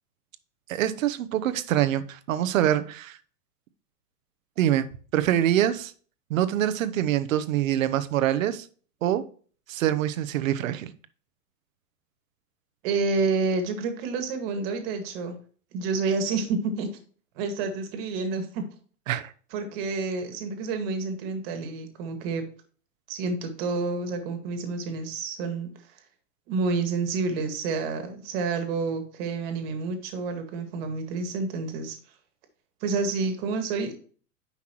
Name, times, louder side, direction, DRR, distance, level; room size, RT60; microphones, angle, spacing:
voice 1, 0.7-3.2 4.6-4.9 5.1-5.9 6.3-8.7 9.0-9.2 9.7-10.9 19.1-19.3, right 11 dB, 55° right, 0.9 m, -25 dB
voice 2, 12.8-15.4 15.7-16.9 17.4-18.6 19.5-22.4 23.1-25.7 26.5-32.0 32.8-33.9, right 4 dB, 35° right, 1.9 m, -29 dB
10.0 x 5.8 x 3.0 m
hypercardioid pair, 150°, 48 cm